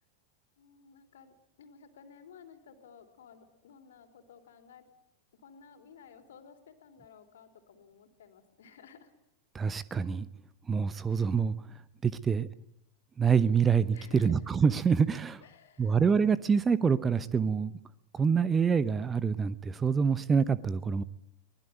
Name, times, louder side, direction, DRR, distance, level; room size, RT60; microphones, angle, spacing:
voice 1, 0.6-4.9 5.3-9.1 13.9-14.3 15.4-16.0, left 6 dB, 60° left, 7 dB, 3.6 m, -55 dB
voice 2, 9.5-10.3 10.7-11.5 12.0-12.5 13.2-15.4 15.8-17.7 18.1-21.0, right 6 dB, 20° right, 18 dB, 0.9 m, -26 dB
23.0 x 20.5 x 9.3 m, 0.77 s
figure-of-eight pair, 90°, 0 cm